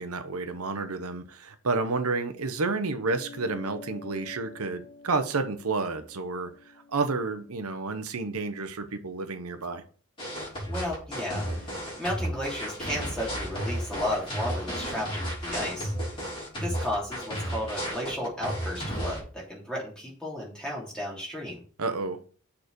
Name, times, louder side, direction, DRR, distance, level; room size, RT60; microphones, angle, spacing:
voice 1, 0.0-9.8 21.8-22.2, right 3 dB, 85° right, 9 dB, 0.9 m, -30 dB
sound 1, 3.0-7.8, left 4 dB, 50° left, 1.0 m, -49 dB
sound 2, 10.2-19.2, equal, 25° left, 3.5 m, -33 dB
voice 2, 10.7-21.6, left 1 dB, 5° left, -4 dB, 3.1 m, -34 dB
6.6 x 4.2 x 6.6 m, 0.41 s
head